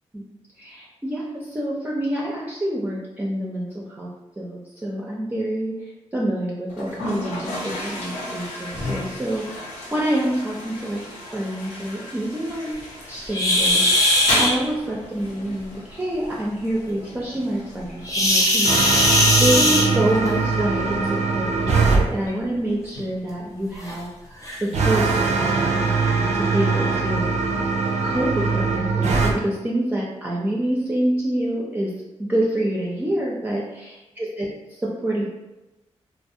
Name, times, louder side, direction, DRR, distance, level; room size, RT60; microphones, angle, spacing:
voice 1, 0.1-4.1 4.4-11.0 11.3-12.7 13.1-27.3 28.0-31.9 32.2-35.2, right 1 dB, 15° right, -4 dB, 0.4 m, -27 dB
Toilet flush, 6.7-23.7, left 1 dB, 85° left, 0.7 m, -35 dB
sound 1, 13.3-14.5 18.1-20.3 21.5-21.7 22.3-22.4 23.0-23.1 23.9-24.0 24.4-24.6, left 1 dB, 30° left, 0.7 m, -19 dB
sound 2, 18.6-22.0 24.7-29.3, right 4 dB, 85° right, 0.4 m, -21 dB
2.3 x 2.0 x 2.6 m, 1.0 s
cardioid pair, 65°, 11 cm